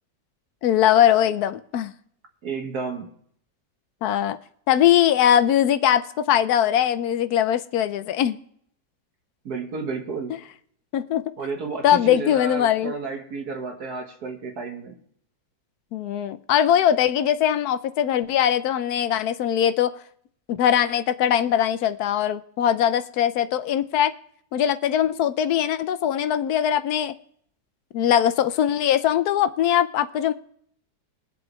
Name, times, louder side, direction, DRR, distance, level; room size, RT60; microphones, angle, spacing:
voice 1, 0.6-1.9 4.0-4.4 4.7-8.4 10.9-11.2 11.8-12.9 15.9-19.9 20.5-24.1 24.5-27.1 27.9-30.3, left 10 dB, 70° left, 1.0 m, -21 dB
voice 2, 2.4-3.1 9.5-10.3 11.4-15.0, right 4 dB, 60° right, 2.0 m, -31 dB
22.0 x 7.8 x 3.1 m
omnidirectional pair, 1.9 m